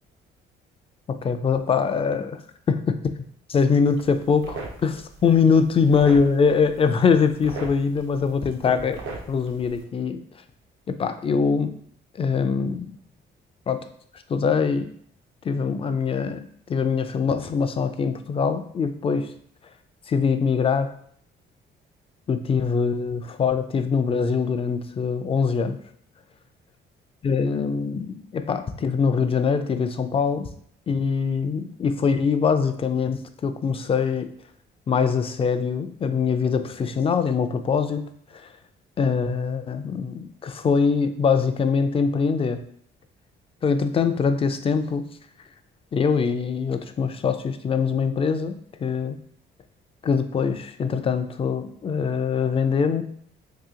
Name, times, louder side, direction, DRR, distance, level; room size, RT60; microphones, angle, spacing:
voice 1, 1.2-2.4 2.7-2.9 3.5-9.0 9.3-10.2 10.9-11.8 12.1-13.0 13.7-13.8 14.3-14.9 15.4-16.4 16.7-19.3 20.1-20.9 22.3-25.8 27.2-30.5 30.9-34.3 34.9-38.0 38.3-38.4 39.0-42.6 43.6-45.0 45.9-49.2 50.0-53.0, left 5 dB, 30° left, 9 dB, 0.3 m, -23 dB
sound 1, 3.8-9.8, right 3 dB, 80° right, 0.7 m, -40 dB
2.8 x 2.7 x 3.7 m, 0.63 s
cardioid pair, 90°, 20 cm